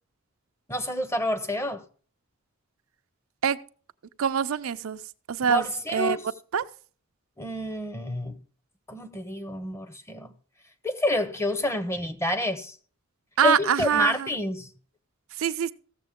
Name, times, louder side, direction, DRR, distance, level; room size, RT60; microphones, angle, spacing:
voice 1, 0.7-1.8 5.5-6.2 7.4-8.4 8.9-10.3 10.8-12.8 13.4-14.7, left 1 dB, 15° left, 0.7 m, -28 dB
voice 2, 4.2-5.0 5.3-6.2 6.5-6.7 13.4-14.3 15.4-15.7, right 7 dB, 75° right, 0.5 m, -24 dB
15.5 x 6.9 x 3.6 m
head